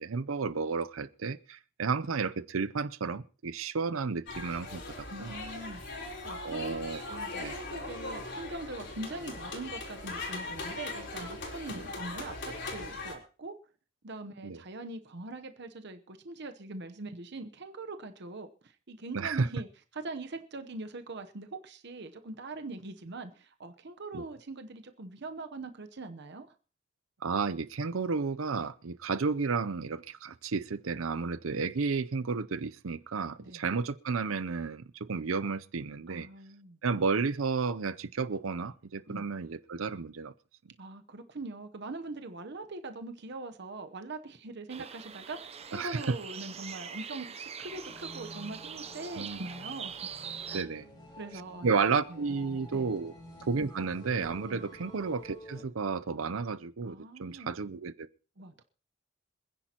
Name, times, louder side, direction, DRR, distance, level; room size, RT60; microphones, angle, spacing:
voice 1, 0.0-5.3 6.4-7.0 7.4-7.5 11.7-11.8 14.4-14.6 19.1-19.5 24.1-24.3 27.2-36.3 36.8-40.3 45.7-46.2 49.2-49.4 50.5-50.9 51.6-53.1 53.4-58.1, right 4 dB, 75° right, 0.6 m, -32 dB
sound 1, 4.3-13.1, left 2 dB, 55° left, 3.9 m, -40 dB
voice 2, 5.1-13.6 14.0-19.7 19.9-26.5 33.4-33.6 36.1-36.8 39.1-39.3 40.8-49.9 50.5-50.6 51.2-51.7 52.1-52.2 52.7-52.9 54.5-54.6 56.8-57.5 58.4-58.6, right 2 dB, 55° right, 0.9 m, -42 dB
sound 2, 44.7-50.6, right 7 dB, 30° right, 0.6 m, -43 dB
sound 3, 47.6-55.6, equal, 20° left, 3.2 m, -50 dB
26.5 x 10.0 x 2.9 m
head